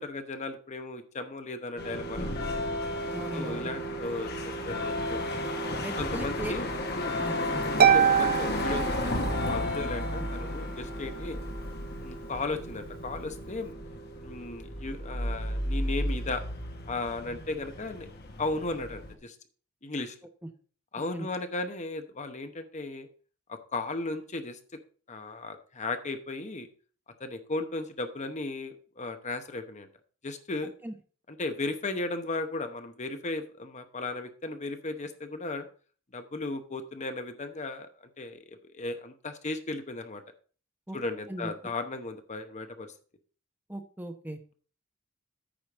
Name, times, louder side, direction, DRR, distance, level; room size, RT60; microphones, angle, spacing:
voice 1, 0.0-2.5 3.3-5.3 6.0-7.2 7.9-11.4 12.0-13.7 14.2-16.4 16.9-18.1 18.4-19.4 19.8-20.1 20.9-23.1 23.5-24.6 25.1-26.7 27.2-29.9 30.2-30.7 31.3-35.7 36.1-37.9 38.2-40.2 40.9-42.9, left 2 dB, 35° left, 8 dB, 1.0 m, -36 dB
sound 1, 1.8-19.2, left 1 dB, 55° left, 1.4 m, -33 dB
voice 2, 3.1-3.7 5.8-6.5 7.2-7.9 10.2-10.3 21.1-21.3 30.8-30.9 40.9-41.0 41.3-41.5 43.7-44.4, right 1 dB, 10° right, 7 dB, 0.9 m, -38 dB
Harp, 7.8-9.7, right 8 dB, 45° right, 0.6 m, -23 dB
8.9 x 5.1 x 6.0 m, 0.41 s
head